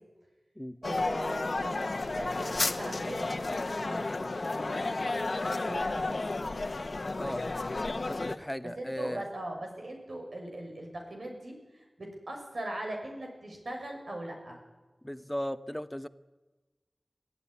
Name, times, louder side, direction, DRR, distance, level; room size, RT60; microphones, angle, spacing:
sound 1, 0.8-8.4, left 3 dB, 65° left, 1.2 m, -32 dB
voice 1, 0.8-4.9 5.3-6.6 8.8-14.6, right 1 dB, 85° right, 1 dB, 6.3 m, -40 dB
voice 2, 7.2-7.5 8.1-9.3 15.0-16.1, equal, 10° left, 12 dB, 1.0 m, -36 dB
23.5 x 15.0 x 9.9 m, 1.2 s
wide cardioid pair, 40°, 0 cm